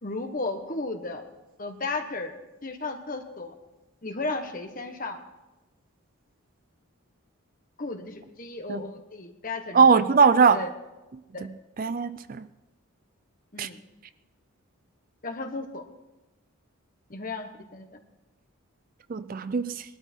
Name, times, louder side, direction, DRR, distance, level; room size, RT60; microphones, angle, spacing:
voice 1, 0.0-1.2 1.6-2.3 2.6-3.5 4.0-5.2 7.8-9.9 10.5-10.7 11.3-11.5 13.5-13.8 15.2-15.8 17.1-17.9, left 3 dB, 40° left, 1.3 m, -34 dB
voice 2, 9.7-10.6 11.8-12.4 13.6-13.7 19.1-19.8, right 5 dB, 40° right, 0.4 m, -20 dB
20.0 x 12.5 x 4.5 m
head